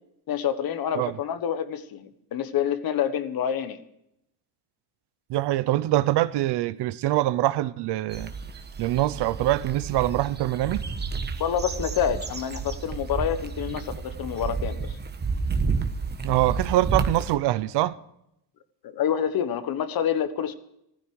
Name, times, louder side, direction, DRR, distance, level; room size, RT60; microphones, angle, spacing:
voice 1, 0.3-3.8 11.4-14.8 18.8-20.6, left 9 dB, 60° left, 1.5 m, -27 dB
voice 2, 5.3-8.3 8.8-10.8 16.2-17.9, right 15 dB, 75° right, 0.9 m, -24 dB
sound 1, 8.1-17.4, right 4 dB, 25° right, 1.4 m, -31 dB
15.5 x 14.5 x 4.8 m
cardioid pair, 120°, 41 cm